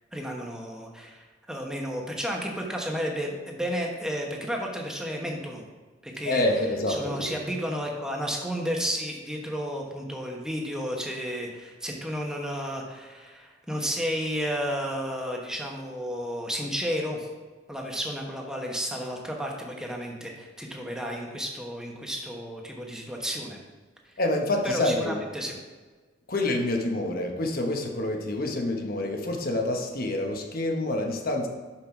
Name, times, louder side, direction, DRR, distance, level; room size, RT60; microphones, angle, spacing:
voice 1, 0.1-5.6 6.0-6.4 6.9-17.3 17.7-23.6 24.6-25.6, equal, 5° right, 0 dB, 1.0 m, -32 dB
voice 2, 6.2-7.3 24.2-25.2 26.3-31.5, left 1 dB, 50° left, 2 dB, 1.1 m, -27 dB
6.5 x 5.9 x 4.4 m, 1.3 s
head